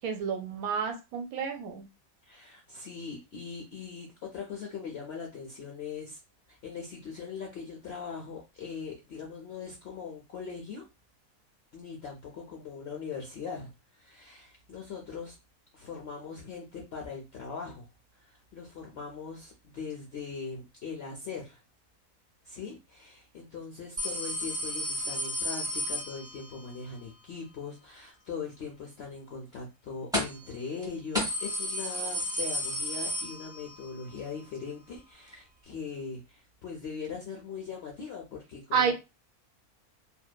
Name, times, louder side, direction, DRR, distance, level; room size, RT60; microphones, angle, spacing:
voice 1, 0.0-1.8 38.7-38.9, right 6 dB, 75° right, 5 dB, 1.0 m, -29 dB
voice 2, 2.3-6.2 6.5-10.9 11.7-15.4 15.7-17.9 18.2-21.6 22.4-38.9, left 5 dB, 70° left, 0 dB, 0.6 m, -41 dB
sound 1, 24.0-26.7 30.1-30.5 30.8-30.9 31.1-33.9 34.2-34.3 35.3-35.4, left 1 dB, 5° right, 0.6 m, -32 dB
2.7 x 2.1 x 2.2 m, 0.26 s
omnidirectional pair, 1.6 m